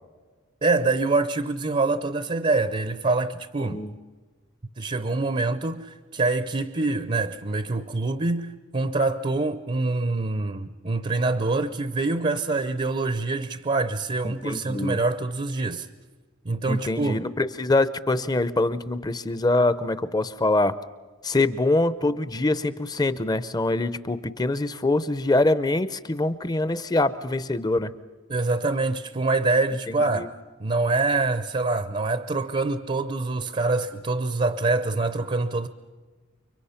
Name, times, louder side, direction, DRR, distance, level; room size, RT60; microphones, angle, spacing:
voice 1, 0.6-3.8 4.8-15.9 16.4-17.2 28.3-30.3 30.6-35.7, right 3 dB, 30° right, 0.6 m, -25 dB
voice 2, 3.6-3.9 14.2-15.0 16.7-20.7 21.2-27.9 29.9-30.3, left 2 dB, 20° left, 0.6 m, -24 dB
30.0 x 24.5 x 5.8 m
head